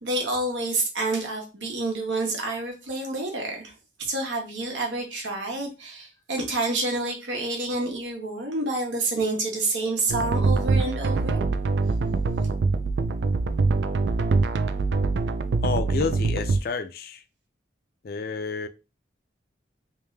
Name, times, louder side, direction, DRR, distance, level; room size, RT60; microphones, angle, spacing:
voice 1, 0.0-3.7 4.0-11.4, right 2 dB, 80° right, 1.3 m, -28 dB
sound 1, 10.1-16.6, right 3 dB, 65° right, 0.3 m, -24 dB
voice 2, 15.6-17.2 18.0-18.7, left 5 dB, 50° left, 0.4 m, -30 dB
3.3 x 2.7 x 3.2 m
head